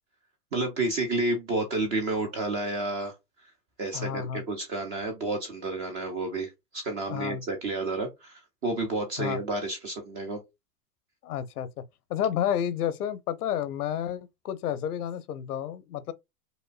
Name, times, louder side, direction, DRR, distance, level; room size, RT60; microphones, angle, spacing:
voice 1, 0.5-3.1 3.8-10.4, right 2 dB, 15° right, 0.3 m, -30 dB
voice 2, 3.9-4.4 7.1-7.4 9.2-9.4 11.2-11.8 12.1-16.1, left 9 dB, 75° left, 0.8 m, -30 dB
5.1 x 2.1 x 2.4 m
hypercardioid pair, 115°, 46 cm